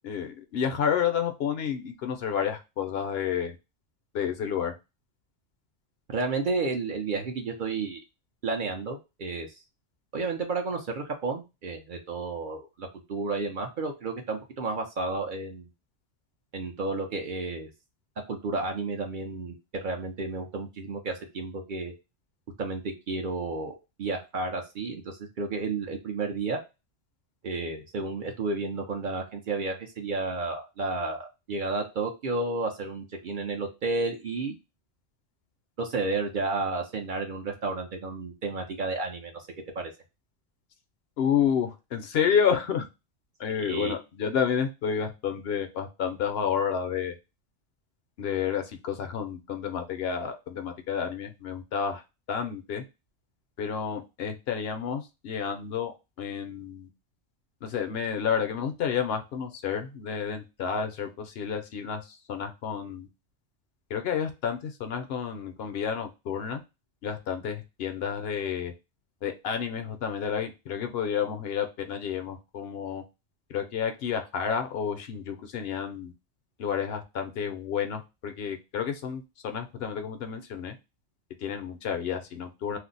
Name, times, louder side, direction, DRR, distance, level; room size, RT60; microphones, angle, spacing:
voice 1, 0.0-3.5 4.1-4.7 41.2-42.9 43.4-47.1 48.2-52.0 52.3-52.8 53.6-56.9 57.6-63.1 63.9-66.6 67.0-68.7 69.2-73.0 73.5-76.1 76.6-80.8 81.4-82.8, left 7 dB, 70° left, 6 dB, 0.7 m, -30 dB
voice 2, 6.1-8.0 8.4-9.5 10.1-15.7 16.5-17.7 18.3-19.5 19.8-21.9 22.6-26.6 27.4-34.5 35.8-39.5 39.8-39.9 43.6-43.9, right 3 dB, 55° right, 3 dB, 0.7 m, -32 dB
2.5 x 2.0 x 3.8 m, 0.26 s
omnidirectional pair, 1.2 m